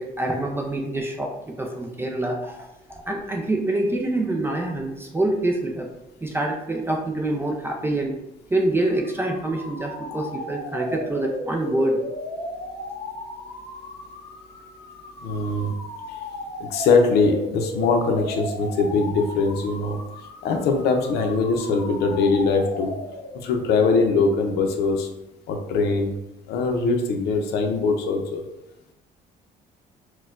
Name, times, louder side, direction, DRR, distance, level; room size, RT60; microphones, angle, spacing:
voice 1, 0.0-5.9 6.2-8.2 8.5-12.0, right 2 dB, 15° right, 1 dB, 0.4 m, -26 dB
sound 1, 8.9-23.6, left 1 dB, 25° left, 0.8 m, -36 dB
voice 2, 15.2-15.7 16.1-16.2 16.6-20.0 20.4-22.9 23.3-25.1 25.5-26.1 26.5-28.4, left 4 dB, 75° left, 4 dB, 0.6 m, -22 dB
4.2 x 2.2 x 2.4 m, 0.91 s
cardioid pair, 110°, 17 cm